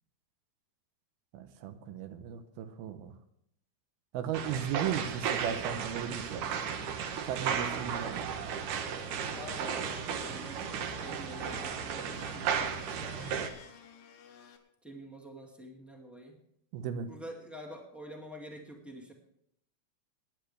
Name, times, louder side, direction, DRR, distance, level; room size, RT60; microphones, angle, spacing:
voice 1, 1.3-3.1 4.1-6.5 7.3-8.3 16.7-17.1, right 9 dB, 85° right, 8 dB, 2.8 m, -36 dB
sound 1, 4.3-13.5, right 7 dB, 70° right, 2.5 m, -35 dB
Domestic sounds home sounds, 9.0-14.6, left 6 dB, 75° left, 3.1 m, -52 dB
voice 2, 9.3-10.7 11.0-13.4 14.8-16.4 17.1-19.1, equal, ahead, 0 dB, 1.0 m, -47 dB
22.5 x 10.0 x 3.4 m, 0.73 s
omnidirectional pair, 4.2 m